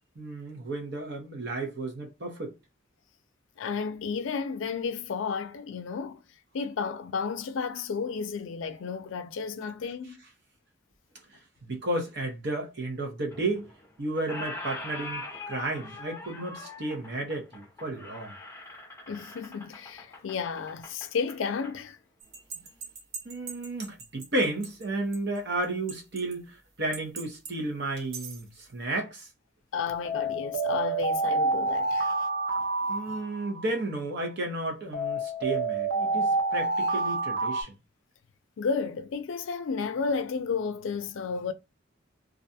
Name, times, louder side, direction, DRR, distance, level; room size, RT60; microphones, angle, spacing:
voice 1, 0.2-2.5 11.3-13.7 14.0-18.3 23.2-29.3 32.9-37.7, right 2 dB, 55° right, 0.8 m, -33 dB
voice 2, 3.6-6.2 6.5-10.2 19.1-22.0 22.6-22.7 29.7-32.1 32.8-33.2 38.6-41.5, left 5 dB, 70° left, 0.4 m, -32 dB
Squeak, 13.3-13.9 14.1-21.8, left 2 dB, 15° left, 0.6 m, -42 dB
sound 1, 22.3-24.2 24.6-24.7 25.1-25.2 25.9-26.3 26.9-27.5 28.0-28.3 30.1-33.8 34.9-37.6, right 3 dB, 90° right, 0.7 m, -29 dB
2.4 x 2.3 x 2.6 m
head